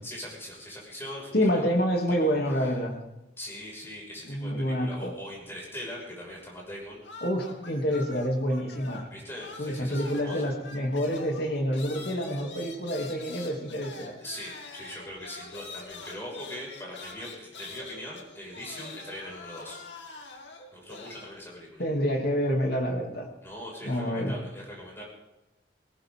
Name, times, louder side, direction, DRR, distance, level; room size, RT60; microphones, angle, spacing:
voice 1, 0.0-1.7 2.1-2.3 2.6-2.7 3.4-7.0 9.1-10.4 14.2-19.8 20.7-21.8 23.4-25.0, left 1 dB, 15° left, -3 dB, 6.3 m, -41 dB
voice 2, 1.3-2.9 4.2-5.1 7.2-9.1 9.6-14.2 21.8-23.3 23.8-24.3, equal, 55° left, 1 dB, 3.1 m, -28 dB
sound 1, 7.0-9.1 9.4-21.4, left 3 dB, 80° left, 2.6 m, -45 dB
19.5 x 18.0 x 3.9 m, 0.97 s
head